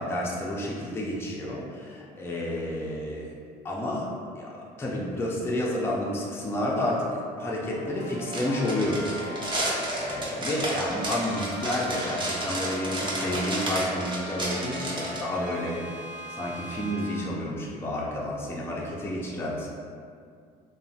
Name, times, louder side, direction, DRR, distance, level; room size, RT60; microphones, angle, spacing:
voice 1, 0.0-3.4 3.6-9.3 9.6-15.8 16.3-19.7, left 1 dB, 15° left, -4 dB, 0.4 m, -30 dB
sound 1, 7.6-10.2 10.6-17.2, equal, 65° right, 1.0 m, -40 dB
sound 2, 8.3-15.2, right 1 dB, 30° right, 0.7 m, -31 dB
2.9 x 2.1 x 2.6 m, 2.2 s
cardioid pair, 110°, 17 cm